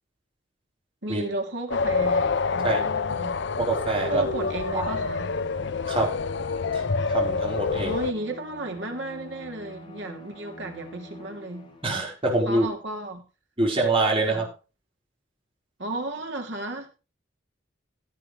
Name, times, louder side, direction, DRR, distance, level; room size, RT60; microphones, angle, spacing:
voice 1, 1.0-3.4 4.1-5.3 7.7-11.7 12.4-13.2 14.3-14.5 15.8-16.9, right 2 dB, 65° right, 3.0 m, -33 dB
sound 1, 1.7-8.1, left 4 dB, 60° left, 0.6 m, -27 dB
Bowed string instrument, 3.5-12.1, left 1 dB, 25° left, 3.6 m, -46 dB
voice 2, 3.6-4.2 4.7-4.9 5.9-6.1 6.7-6.8 7.1-7.9 11.8-12.7 13.6-14.5, right 2 dB, 30° right, 4.6 m, -25 dB
16.5 x 9.0 x 3.2 m
head